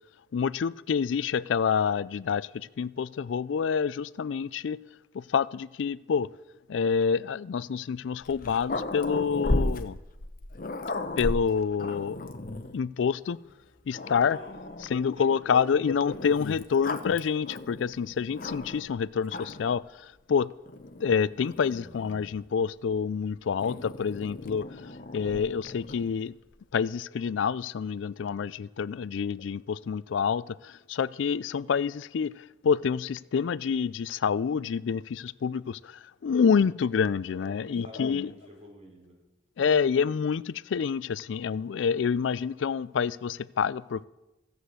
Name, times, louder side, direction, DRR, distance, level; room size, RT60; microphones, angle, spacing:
voice 1, 0.3-4.8 5.1-6.3 6.7-10.0 11.2-12.3 12.7-13.4 13.9-14.4 14.8-20.5 21.0-24.8 25.1-26.3 26.7-38.3 39.6-44.1, left 6 dB, 75° left, 0.4 m, -27 dB
Growling, 8.2-12.8 13.5-13.6 13.9-15.0 16.1-18.9 19.2-19.8 20.7-22.5 23.6-26.1, left 2 dB, 45° left, 0.9 m, -35 dB
voice 2, 13.9-16.5 37.2-39.2, equal, 35° right, 4.1 m, -50 dB
14.5 x 8.0 x 8.1 m
head